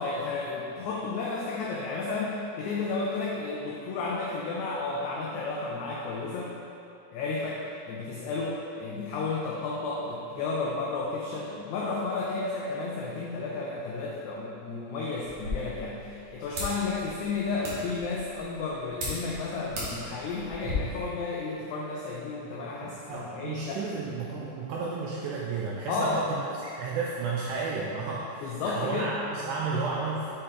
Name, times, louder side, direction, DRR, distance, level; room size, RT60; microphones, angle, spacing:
voice 1, 0.0-6.5 7.1-23.8 25.9-26.3 28.4-29.1, left 3 dB, 90° left, -3 dB, 1.6 m, -32 dB
sound 1, 15.2-20.7, equal, 60° right, 2.0 m, -39 dB
voice 2, 22.8-30.3, right 4 dB, 85° right, -3 dB, 1.8 m, -32 dB
6.5 x 4.2 x 3.8 m, 2.7 s
omnidirectional pair, 4.0 m